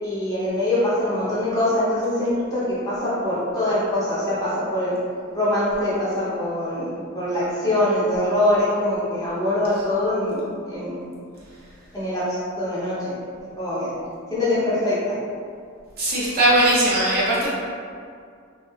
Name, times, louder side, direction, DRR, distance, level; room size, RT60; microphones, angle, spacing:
voice 1, 0.0-5.0 5.3-6.9 7.1-11.0 11.9-13.1 13.6-13.9 14.3-15.1, left 1 dB, 15° left, -11 dB, 0.7 m, -23 dB
voice 2, 16.0-17.5, right 1 dB, 45° right, -9 dB, 0.7 m, -19 dB
2.7 x 2.4 x 2.3 m, 2.2 s
head